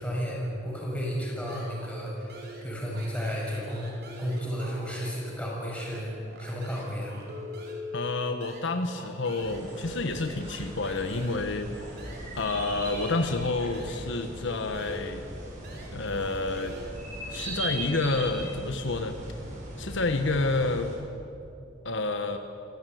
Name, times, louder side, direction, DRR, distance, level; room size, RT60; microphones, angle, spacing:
voice 1, 0.0-6.1 6.4-7.1, equal, 5° left, -3 dB, 6.9 m, -33 dB
sound 1, 1.5-2.0 2.3-5.2 5.5-14.1 14.4-17.6, equal, 55° right, 4.9 m, -45 dB
voice 2, 7.9-12.0 12.4-15.2 15.9-16.7 17.3-19.2 19.8-20.9 21.8-22.4, left 3 dB, 65° left, 7 dB, 1.3 m, -29 dB
sound 2, 9.4-21.0, right 1 dB, 40° right, 7.7 m, -39 dB
27.0 x 15.5 x 9.4 m, 2.7 s
head